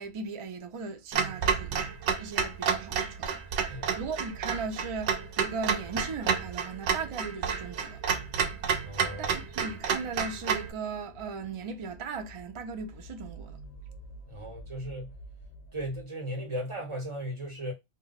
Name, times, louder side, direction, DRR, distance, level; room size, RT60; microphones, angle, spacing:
voice 1, 0.0-8.0 9.2-13.6, right 4 dB, 50° right, 0.3 m, -38 dB
Clock, 1.1-10.7, right 6 dB, 75° right, 0.8 m, -30 dB
sound 1, 1.7-16.0, right 2 dB, 50° left, 0.5 m, -49 dB
voice 2, 8.8-9.3 14.2-15.1 15.7-17.7, equal, 25° right, 1.1 m, -36 dB
2.2 x 2.2 x 3.9 m
omnidirectional pair, 1.2 m